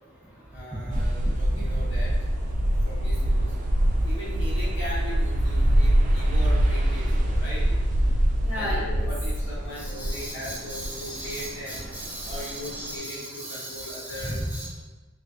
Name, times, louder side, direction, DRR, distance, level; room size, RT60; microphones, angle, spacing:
voice 1, 0.5-2.1 2.8-3.6 4.0-7.7 8.5-11.9 12.2-14.5, equal, 60° left, -8 dB, 1.4 m, -39 dB
sound 1, 0.9-13.0, right 1 dB, 40° right, 0.3 m, -24 dB
voice 2, 8.5-9.1 9.8-14.7, equal, 10° right, -8 dB, 0.7 m, -35 dB
3.3 x 3.0 x 2.8 m, 1.2 s
head